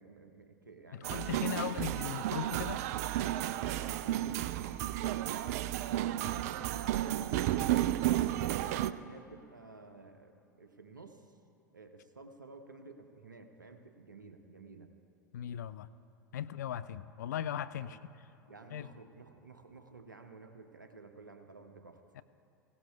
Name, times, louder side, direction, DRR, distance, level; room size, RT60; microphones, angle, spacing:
voice 1, 0.0-1.9 2.7-7.6 8.2-11.4 11.7-14.9 17.8-18.0 18.5-22.0, right 3 dB, 85° right, 7 dB, 0.9 m, -53 dB
voice 2, 0.9-2.8 15.3-15.9 16.3-18.0 18.7-18.9 22.2-22.3, left 10 dB, 65° left, 14 dB, 0.4 m, -38 dB
sound 1, 1.0-8.9, right 13 dB, 55° right, 0.4 m, -32 dB
18.0 x 17.0 x 2.4 m, 2.8 s
figure-of-eight pair, 85°, 10 cm